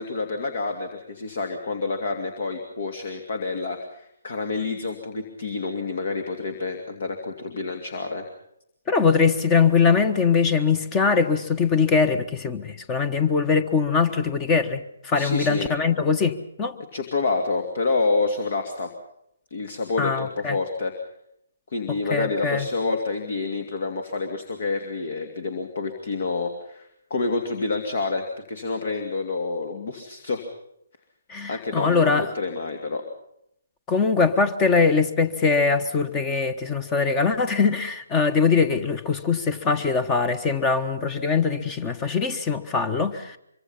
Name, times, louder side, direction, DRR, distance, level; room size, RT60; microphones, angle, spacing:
voice 1, 0.0-8.3 15.1-15.7 16.9-18.9 19.5-20.9 21.7-30.5 31.5-33.0, left 3 dB, 55° left, 6 dB, 2.7 m, -28 dB
voice 2, 8.9-16.8 20.0-20.6 21.9-22.7 31.3-32.3 33.9-43.4, left 5 dB, 20° left, 12 dB, 1.4 m, -22 dB
24.5 x 24.5 x 5.7 m, 0.77 s
figure-of-eight pair, 140°, 0 cm